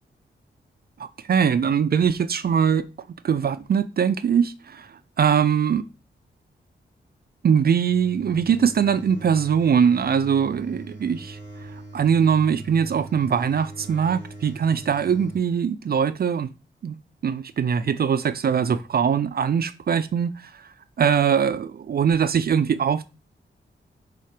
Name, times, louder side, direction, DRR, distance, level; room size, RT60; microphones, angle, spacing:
voice 1, 1.0-2.9 3.2-5.8 7.4-16.5 16.8-17.0 17.2-23.1, right 7 dB, 55° right, 0.5 m, -22 dB
sound 1, 7.8-15.4, right 2 dB, 20° left, 3.2 m, -41 dB
5.7 x 3.7 x 4.8 m
cardioid pair, 70°, 19 cm